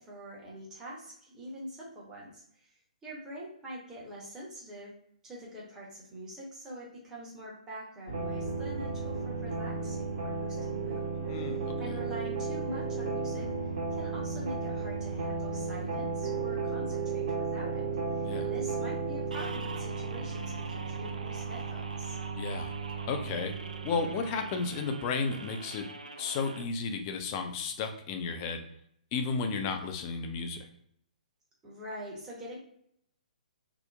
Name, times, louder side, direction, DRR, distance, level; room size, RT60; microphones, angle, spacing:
voice 1, 0.0-2.8 3.0-4.9 5.2-13.5 13.9-17.9 18.1-22.2 31.6-32.6, equal, 15° right, -5 dB, 0.8 m, -44 dB
sound 1, 8.1-24.8, right 4 dB, 40° right, 1.2 m, -34 dB
voice 2, 11.3-11.7 18.2-18.5 22.4-22.7 23.1-23.5 23.8-25.9 26.2-28.6 29.1-30.7, left 4 dB, 30° left, 5 dB, 0.4 m, -33 dB
sound 2, 19.3-26.6, right 4 dB, 70° right, 0.3 m, -44 dB
2.7 x 2.0 x 2.3 m, 0.70 s
figure-of-eight pair, 125°, 4 cm